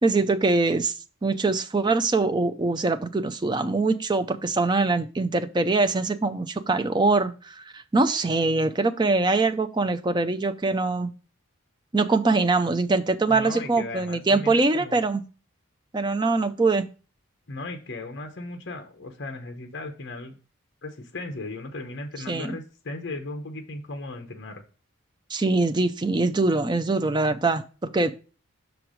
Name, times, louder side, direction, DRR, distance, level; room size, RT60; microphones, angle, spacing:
voice 1, 0.0-0.9 1.2-11.1 11.9-15.2 15.9-16.9 22.3-22.6 25.3-28.1, right 3 dB, 20° right, 9 dB, 0.4 m, -23 dB
voice 2, 13.3-15.0 17.5-20.4 20.8-24.6, left 2 dB, 50° left, 5 dB, 0.9 m, -36 dB
6.1 x 4.6 x 4.9 m, 0.35 s
head